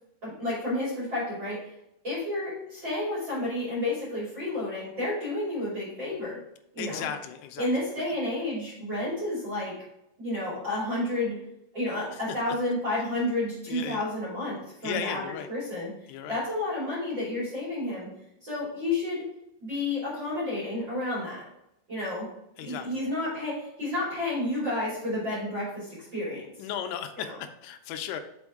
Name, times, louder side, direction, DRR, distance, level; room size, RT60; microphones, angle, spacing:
voice 1, 0.2-1.7 2.0-6.4 6.7-7.1 7.6-9.7 10.2-11.4 11.7-15.2 15.5-15.9 16.3-18.1 18.4-19.3 19.6-21.4 21.9-22.3 22.6-26.4 27.2-27.3, left 1 dB, 35° right, -8 dB, 2.1 m, -31 dB
voice 2, 6.8-7.7 12.1-12.4 13.7-14.0 14.8-15.5 16.1-16.4 22.6-23.1 26.6-28.2, left 9 dB, 85° left, 8 dB, 3.2 m, -35 dB
6.2 x 5.1 x 3.6 m, 0.83 s
omnidirectional pair, 5.7 m